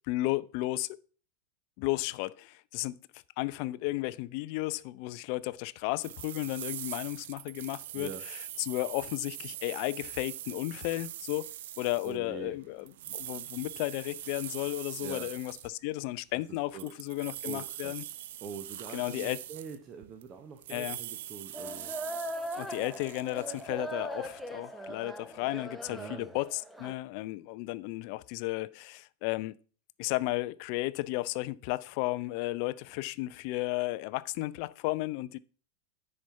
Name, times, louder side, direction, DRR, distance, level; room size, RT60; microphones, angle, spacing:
voice 1, 0.1-1.0 1.8-3.0 3.4-18.1 18.9-19.4 20.7-21.0 22.6-29.6 30.0-35.4, left 19 dB, 45° left, 0.4 m, -34 dB
sound 1, 6.0-15.7 16.5-20.3 20.6-24.4, right 12 dB, 55° right, 0.4 m, -43 dB
voice 2, 12.0-12.6 15.0-15.3 16.5-16.9 17.4-18.0 18.4-21.9 25.9-26.3, right 6 dB, 30° right, 0.9 m, -44 dB
sound 2, 21.5-27.0, right 1 dB, 5° right, 0.9 m, -40 dB
10.0 x 4.3 x 5.8 m
figure-of-eight pair, 90°, 0 cm